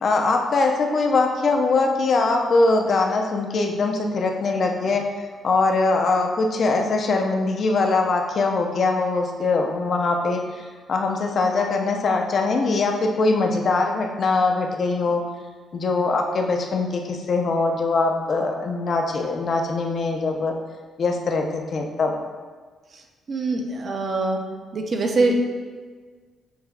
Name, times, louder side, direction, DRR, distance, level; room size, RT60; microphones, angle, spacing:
voice 1, 0.0-5.1 5.4-15.2 15.7-20.5 21.0-22.2, left 3 dB, 50° left, 3 dB, 0.4 m, -22 dB
voice 2, 23.3-24.4 24.7-25.4, right 2 dB, 45° right, 2 dB, 0.5 m, -23 dB
6.2 x 2.4 x 2.3 m, 1.5 s
cardioid pair, 90°, 0 cm